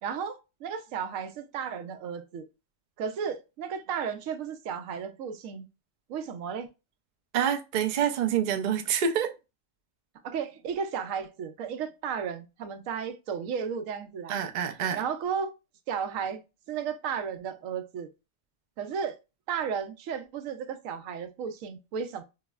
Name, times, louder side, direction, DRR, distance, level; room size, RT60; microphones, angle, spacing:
voice 1, 0.0-2.4 3.0-5.7 6.1-6.7 10.2-14.3 14.9-15.5 15.9-16.4 16.7-18.1 18.8-19.2 19.5-22.2, right 7 dB, 85° right, 1.0 m, -34 dB
voice 2, 7.3-9.3 14.3-15.0, right 8 dB, 65° right, 0.4 m, -27 dB
5.5 x 2.0 x 2.2 m
omnidirectional pair, 1.3 m